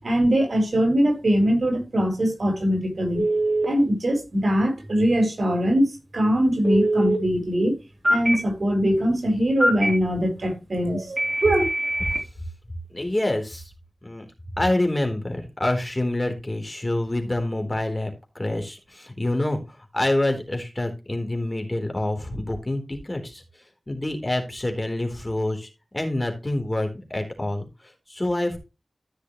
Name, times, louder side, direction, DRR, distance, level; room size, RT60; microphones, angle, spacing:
voice 1, 0.0-3.2 3.6-5.9 6.1-7.8 8.1-11.6, equal, 70° right, 4.6 m, -22 dB
Telephone, 3.1-3.7 6.6-7.2 8.0-8.3 9.6-9.9 11.2-12.2, right 1 dB, 25° right, 3.6 m, -22 dB
voice 2, 12.9-13.7 14.0-14.3 14.6-23.4 23.9-28.6, left 1 dB, 25° left, 4.0 m, -27 dB
14.0 x 6.3 x 3.1 m
wide cardioid pair, 70°, 0 cm